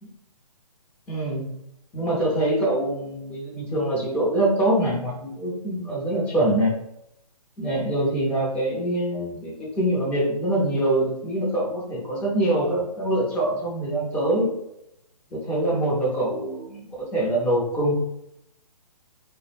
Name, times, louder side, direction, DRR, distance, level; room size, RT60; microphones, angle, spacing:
voice 1, 1.1-1.5 1.9-6.7 7.6-14.5 15.3-17.9, right 1 dB, 5° left, -5 dB, 0.4 m, -24 dB
2.0 x 2.0 x 3.1 m, 0.80 s
figure-of-eight pair, 135°, 20 cm